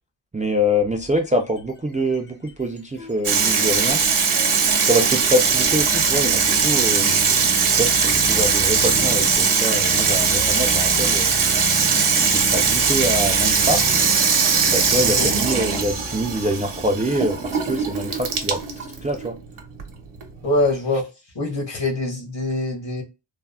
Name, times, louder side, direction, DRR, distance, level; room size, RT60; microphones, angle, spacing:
voice 1, 0.3-4.0 4.8-7.1 7.8-11.3 12.1-13.8 14.7-18.6 19.0-19.4, equal, 20° right, 0.3 m, -25 dB
sound 1, 1.2-1.7 2.1-18.7, left 3 dB, 25° left, 0.6 m, -35 dB
Water tap faucet / Sink (filling or washing), 3.2-20.7, right 5 dB, 85° right, 0.8 m, -20 dB
voice 2, 15.0-15.3 20.4-21.1 21.3-23.0, left 2 dB, 60° left, 1.3 m, -24 dB
3.4 x 2.0 x 2.2 m
wide cardioid pair, 120°, 48 cm